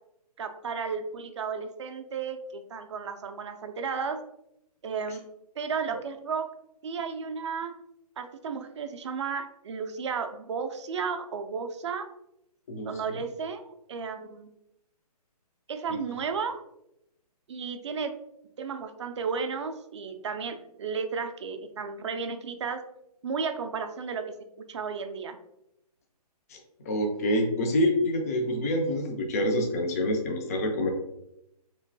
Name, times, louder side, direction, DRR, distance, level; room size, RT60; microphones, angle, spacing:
voice 1, 0.4-4.2 4.8-5.2 5.6-6.5 6.8-7.7 8.2-12.1 12.8-14.5 15.7-16.6 17.5-18.1 18.6-22.8 23.2-25.4, right 5 dB, 45° right, 6 dB, 0.4 m, -33 dB
voice 2, 26.8-30.9, left 1 dB, 25° left, 2 dB, 0.4 m, -26 dB
3.4 x 3.0 x 2.6 m, 0.82 s
hypercardioid pair, 155°, 20 cm